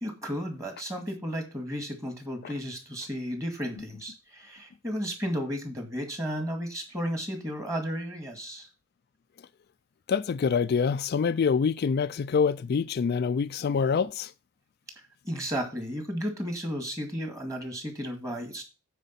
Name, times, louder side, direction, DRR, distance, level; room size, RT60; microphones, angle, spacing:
voice 1, 0.0-8.7 15.2-18.6, equal, 15° right, 2.1 m, -33 dB
voice 2, 10.1-14.3, left 6 dB, 50° left, 0.3 m, -25 dB
9.1 x 4.6 x 5.7 m
head